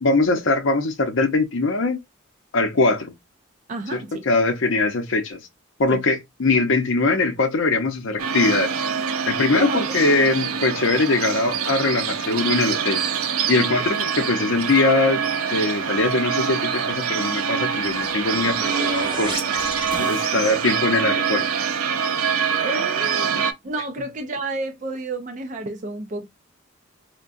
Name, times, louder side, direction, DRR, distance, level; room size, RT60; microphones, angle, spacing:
voice 1, 0.0-2.0 2.5-3.1 3.9-5.4 5.8-8.7 9.3-13.0 13.5-15.2 15.5-19.5 20.0-21.5, left 3 dB, 65° left, 0.6 m, -21 dB
voice 2, 3.7-4.3 5.9-6.0 9.5-10.0 10.2-10.3 13.6-13.9 18.4-18.7 22.6-26.3, right 2 dB, 35° right, 0.4 m, -31 dB
sound 1, 8.2-23.5, right 6 dB, 90° right, 0.5 m, -25 dB
sound 2, 17.8-20.8, right 2 dB, 20° right, 1.0 m, -33 dB
4.4 x 2.2 x 2.5 m
head